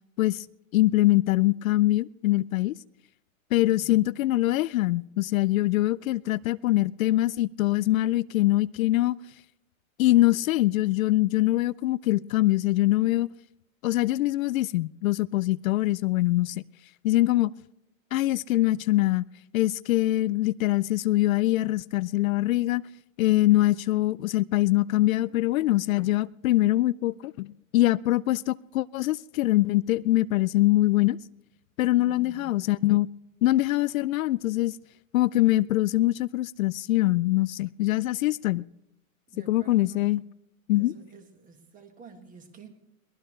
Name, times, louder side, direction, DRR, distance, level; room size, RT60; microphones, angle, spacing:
voice 1, 0.7-2.7 3.5-9.2 10.0-13.3 13.8-16.6 17.0-17.5 18.1-19.2 19.5-22.8 23.2-31.2 31.8-33.1 33.4-34.8 35.1-38.7 39.4-40.2 40.7-40.9, left 16 dB, 70° left, 0.5 m, -23 dB
voice 2, 3.7-4.1 23.2-23.7 32.0-32.6 39.3-40.2 40.8-42.8, right 5 dB, 20° right, 1.7 m, -50 dB
22.5 x 19.0 x 3.2 m
hypercardioid pair, 145°, 42 cm